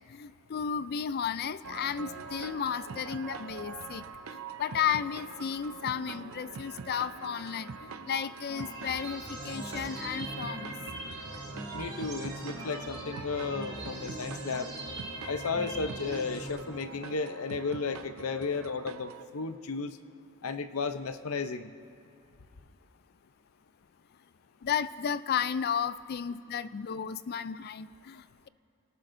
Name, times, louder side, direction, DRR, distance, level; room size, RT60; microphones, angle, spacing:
voice 1, 0.1-4.0 4.3-10.7 24.6-28.5, left 7 dB, 45° left, 15 dB, 0.3 m, -33 dB
sound 1, 1.6-19.2, right 5 dB, 70° right, 0.6 m, -44 dB
sound 2, 8.5-16.5, right 1 dB, 20° right, 4.0 m, -41 dB
voice 2, 11.7-14.7 15.3-20.0 20.4-21.7, left 4 dB, 75° left, 10 dB, 0.7 m, -34 dB
24.5 x 18.0 x 2.6 m, 2.4 s
head